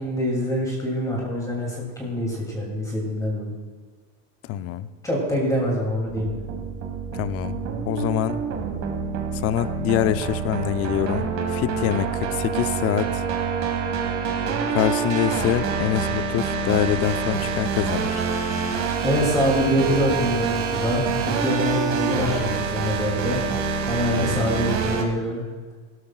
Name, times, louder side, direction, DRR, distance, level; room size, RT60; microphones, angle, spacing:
voice 1, 0.0-3.5 5.0-6.4 19.0-23.4 23.9-25.4, equal, 10° left, -3 dB, 2.8 m, -25 dB
voice 2, 4.5-4.9 7.1-7.6 7.9-8.4 9.4-13.2 14.7-18.2 24.2-24.5, left 12 dB, 35° left, 13 dB, 0.5 m, -25 dB
sound 1, 6.1-25.0, right 5 dB, 40° right, 1.7 m, -26 dB
17.0 x 12.5 x 2.4 m, 1.4 s
supercardioid pair, 135°, 40 cm